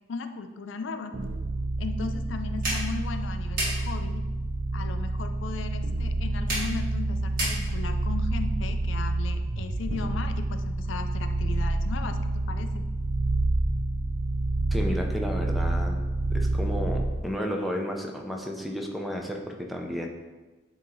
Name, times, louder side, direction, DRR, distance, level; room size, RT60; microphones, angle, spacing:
voice 1, 0.1-1.1 1.8-4.2 4.7-12.8, left 4 dB, 80° left, 8 dB, 0.4 m, -36 dB
sound 1, 1.1-17.3, right 2 dB, 80° right, 0.7 m, -28 dB
sound 2, 1.9-8.0, right 1 dB, 55° right, 2.0 m, -36 dB
voice 2, 14.7-16.0 16.3-20.1, equal, ahead, 1 dB, 0.6 m, -32 dB
8.7 x 2.9 x 3.8 m, 1.2 s
head